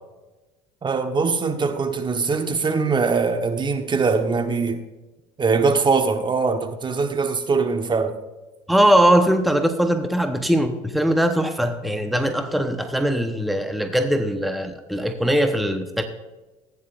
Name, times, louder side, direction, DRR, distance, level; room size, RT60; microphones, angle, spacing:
voice 1, 0.8-4.8 5.4-8.2, right 4 dB, 30° right, 1.1 m, -22 dB
voice 2, 8.7-16.0, equal, ahead, 0.9 m, -20 dB
15.5 x 9.7 x 2.5 m
hypercardioid pair, 75°, 17 cm